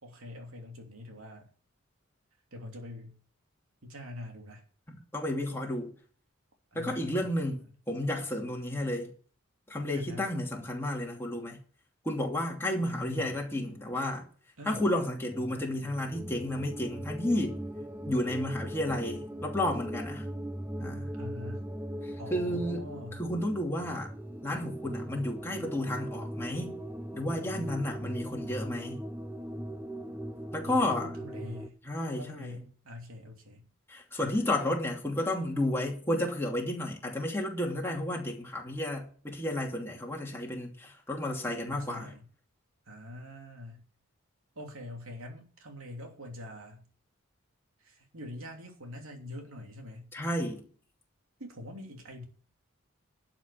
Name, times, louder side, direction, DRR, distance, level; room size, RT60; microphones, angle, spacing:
voice 1, 0.0-1.5 2.5-3.2 3.8-4.6 6.7-7.7 9.9-10.3 12.7-13.5 14.6-14.9 21.1-21.6 22.2-23.2 30.6-31.8 32.1-33.7 34.2-34.4 41.7-42.3 42.9-43.8 44.5-46.9 47.8-50.1 51.4-52.2, left 1 dB, 85° right, 3.0 m, -44 dB
voice 2, 5.1-5.9 6.7-9.1 9.7-11.6 12.0-14.3 14.7-17.6 18.1-20.3 20.8-21.1 22.0-22.9 23.1-24.1 24.4-26.8 27.1-29.0 30.5-31.1 31.8-32.5 33.9-42.1 50.1-50.7, left 1 dB, 10° left, 2.7 m, -32 dB
sound 1, 15.3-31.7, right 1 dB, 10° right, 0.7 m, -39 dB
12.0 x 6.1 x 8.4 m
head